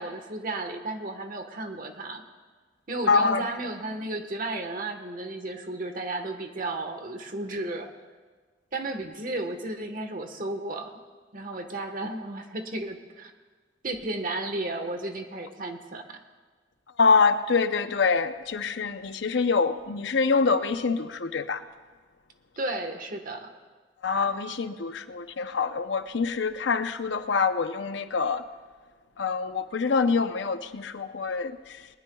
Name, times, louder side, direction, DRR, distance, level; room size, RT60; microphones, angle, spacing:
voice 1, 0.0-2.2 2.9-7.9 8.7-10.9 11.3-13.3 13.8-16.2 22.6-23.5, right 2 dB, 50° right, 6 dB, 1.3 m, -33 dB
voice 2, 3.1-3.5 17.0-21.6 24.0-28.4 29.2-31.9, left 4 dB, 75° left, 10 dB, 0.7 m, -25 dB
21.0 x 19.5 x 2.3 m, 1.4 s
head